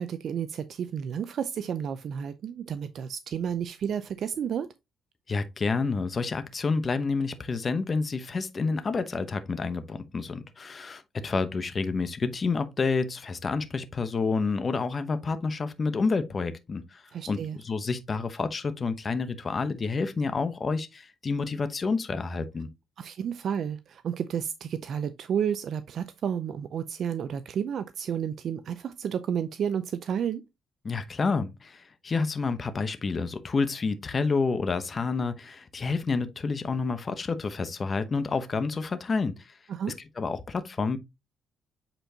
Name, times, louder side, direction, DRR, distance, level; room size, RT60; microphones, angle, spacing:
voice 1, 0.0-4.7 17.1-17.6 23.0-30.4 39.7-40.0, right 8 dB, 65° right, 0.5 m, -31 dB
voice 2, 5.3-17.4 17.6-22.7 30.8-39.5 40.2-41.0, left 4 dB, 35° left, 0.9 m, -29 dB
7.8 x 4.4 x 2.8 m
cardioid pair, 90°, 0 cm